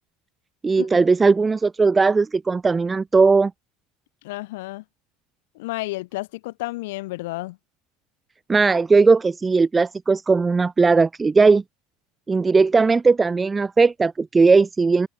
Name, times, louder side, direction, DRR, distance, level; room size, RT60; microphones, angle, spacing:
voice 1, 0.6-3.5 8.5-11.6 12.3-15.1, right 4 dB, 20° right, 0.3 m, -18 dB
voice 2, 4.2-4.8 5.5-7.6, left 20 dB, 75° left, 1.2 m, -31 dB
hypercardioid pair, 95°, 0 cm